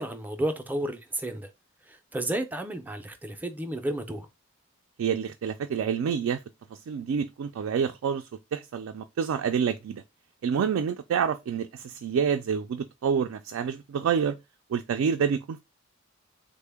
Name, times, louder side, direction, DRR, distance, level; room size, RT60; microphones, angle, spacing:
voice 1, 0.0-1.5 1.9-4.3, right 1 dB, 10° right, 0.4 m, -32 dB
voice 2, 5.0-6.4 6.7-10.0 10.4-14.4 14.7-15.6, right 7 dB, 85° right, 0.3 m, -28 dB
3.6 x 2.1 x 3.3 m
head